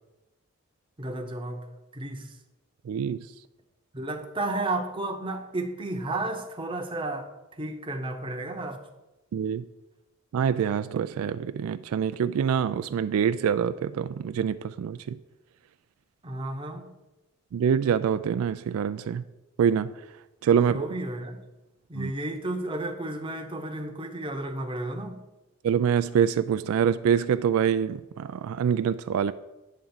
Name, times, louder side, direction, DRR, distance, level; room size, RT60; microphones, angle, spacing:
voice 1, 1.0-1.7 1.9-2.3 3.9-7.3 7.6-8.8 16.2-16.9 20.7-21.4 21.9-25.2, right 2 dB, 25° right, 4 dB, 0.8 m, -32 dB
voice 2, 2.9-3.3 9.3-9.6 10.3-15.2 17.5-19.2 19.6-19.9 20.4-20.9 21.9-22.1 25.6-29.3, right 7 dB, 80° right, 12 dB, 0.3 m, -25 dB
9.2 x 3.7 x 7.1 m, 1.0 s
head